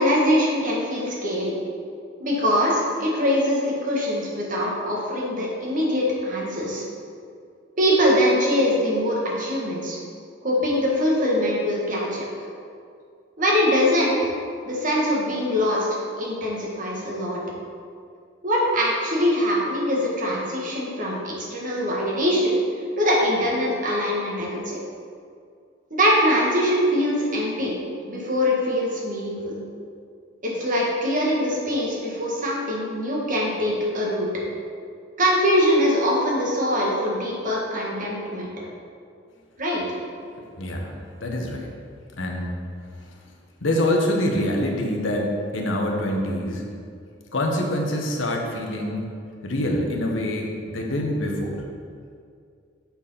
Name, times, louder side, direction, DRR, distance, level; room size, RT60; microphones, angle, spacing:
voice 1, 0.0-1.5 2.2-6.8 7.8-10.0 10.4-12.3 13.4-14.3 14.6-15.9 16.2-17.4 18.4-22.6 23.0-24.8 25.9-27.8 28.1-29.6 30.4-34.3 35.2-38.5 39.6-39.8, equal, 45° right, -3 dB, 1.7 m, -23 dB
voice 2, 40.6-41.7 42.2-42.6 43.6-46.6 47.3-49.1 49.4-51.6, left 1 dB, 90° left, 1 dB, 1.1 m, -25 dB
7.1 x 4.5 x 5.7 m, 2.3 s
head